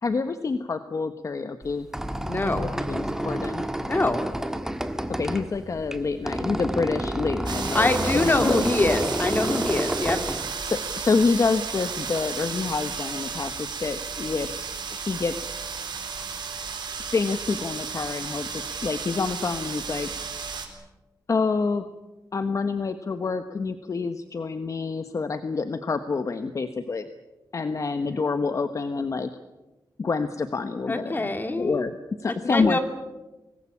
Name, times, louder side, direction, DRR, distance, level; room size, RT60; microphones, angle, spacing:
voice 1, 0.0-1.9 2.6-3.6 5.1-8.6 10.6-14.5 14.9-15.5 17.1-20.1 21.3-21.9 22.3-27.1 27.5-29.3 30.0-31.3 31.6-32.8, left 4 dB, 45° left, 9 dB, 1.2 m, -27 dB
Squeak, 1.6-11.2, right 1 dB, 5° right, 1.6 m, -30 dB
voice 2, 2.2-2.7 3.9-4.2 7.7-10.2 30.9-31.9 32.3-32.8, left 2 dB, 25° left, 6 dB, 2.9 m, -24 dB
sound 1, 7.5-20.7, right 5 dB, 85° right, 4.0 m, -33 dB
24.5 x 20.0 x 8.7 m, 1.1 s
wide cardioid pair, 125°, 7 cm